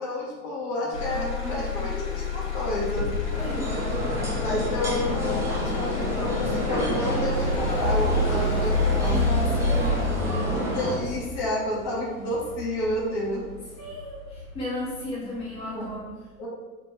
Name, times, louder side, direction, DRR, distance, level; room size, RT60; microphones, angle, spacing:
voice 1, 0.0-3.1 4.4-9.2 10.5-13.4 15.2-15.3 15.6-15.9 16.4-16.5, left 1 dB, 40° left, -3 dB, 1.0 m, -30 dB
Motor vehicle (road), 0.9-14.9 15.4-15.9, left 3 dB, 65° left, 1.1 m, -29 dB
voice 2, 1.1-1.9 3.4-4.5 9.1-10.2 13.8-16.2, left 1 dB, 15° left, -7 dB, 0.8 m, -35 dB
sound 1, 3.2-11.0, right 1 dB, 10° right, 0.3 m, -30 dB
3.5 x 2.5 x 3.1 m, 1.3 s
figure-of-eight pair, 90°, 41 cm